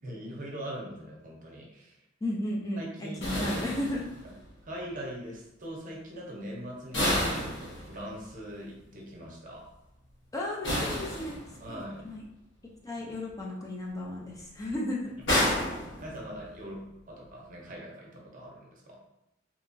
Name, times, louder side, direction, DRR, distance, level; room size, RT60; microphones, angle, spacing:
voice 1, 0.0-2.0 2.8-3.8 4.6-9.7 11.6-12.2 12.9-13.1 16.0-19.0, equal, 45° right, -2 dB, 0.6 m, -42 dB
voice 2, 2.2-4.1 10.3-11.4 11.7-12.2 12.8-15.1, left 1 dB, 15° left, -3 dB, 0.3 m, -34 dB
sound 1, 3.2-4.5 6.9-8.3 10.6-11.8 15.3-16.6, left 1 dB, 65° left, 0.9 m, -30 dB
2.8 x 2.3 x 2.5 m, 0.88 s
head